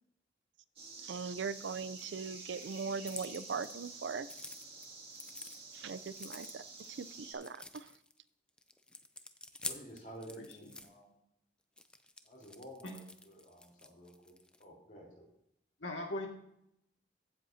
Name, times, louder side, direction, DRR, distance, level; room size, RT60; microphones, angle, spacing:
sound 1, 0.8-7.3, right 3 dB, 30° right, 2.3 m, -49 dB
voice 1, 1.0-4.3 5.7-6.6 7.0-7.9, right 5 dB, 75° right, 16 dB, 0.4 m, -40 dB
sound 2, 3.0-3.9 4.2-5.6 6.1-6.8 7.3-8.2 8.6-10.9 11.8-14.7, left 2 dB, 5° left, 0.4 m, -47 dB
voice 2, 9.5-11.2 12.2-14.3 14.6-15.3, right 1 dB, 45° left, -3 dB, 3.7 m, -52 dB
voice 3, 10.4-10.7 12.8-13.0 15.8-16.3, left 1 dB, 80° left, 1 dB, 2.0 m, -40 dB
15.0 x 7.7 x 2.8 m, 0.75 s
head